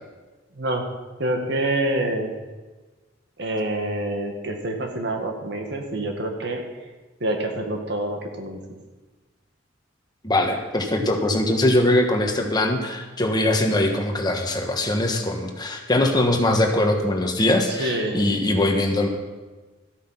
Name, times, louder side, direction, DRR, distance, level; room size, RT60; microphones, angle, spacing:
voice 1, 1.2-2.3 3.4-6.6 7.2-8.6 17.8-18.2, right 1 dB, 65° right, 3 dB, 1.8 m, -26 dB
voice 2, 10.2-19.1, left 1 dB, 20° left, 3 dB, 1.3 m, -21 dB
13.5 x 8.5 x 5.7 m, 1.3 s
head